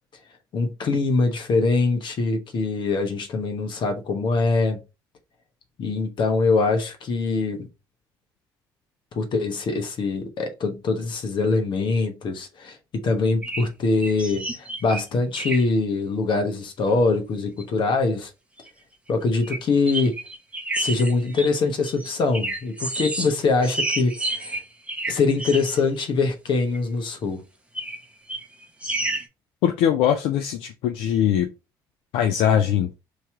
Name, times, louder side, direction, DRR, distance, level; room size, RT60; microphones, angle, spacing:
voice 1, 0.5-4.8 5.8-7.7 9.1-18.3 19.1-20.2 20.8-24.6 25.1-27.4, left 3 dB, 60° left, 1.1 m, -23 dB
sound 1, 13.4-13.7 14.0-15.0 15.3-15.6 16.8-16.9 17.4-17.6 18.6-18.7 19.4-19.6 19.9-23.3 23.6-26.1 26.7-26.8 27.7-28.0 28.3-29.3, right 2 dB, 15° right, 0.9 m, -30 dB
voice 2, 29.6-31.5 32.1-32.9, left 9 dB, 80° left, 0.4 m, -21 dB
3.1 x 2.8 x 3.6 m
supercardioid pair, 70°, 9 cm